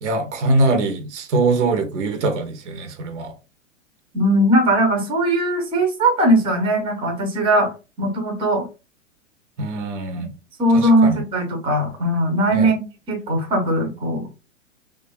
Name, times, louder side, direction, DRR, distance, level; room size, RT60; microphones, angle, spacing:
voice 1, 0.0-3.3 9.6-10.3 10.7-11.2 12.5-12.7, right 2 dB, 60° right, 0.8 m, -22 dB
voice 2, 4.1-7.7 8.0-8.6 10.6-12.8 13.1-14.3, right 1 dB, 15° right, 0.7 m, -19 dB
2.5 x 2.3 x 2.3 m
hypercardioid pair, 110°, 39 cm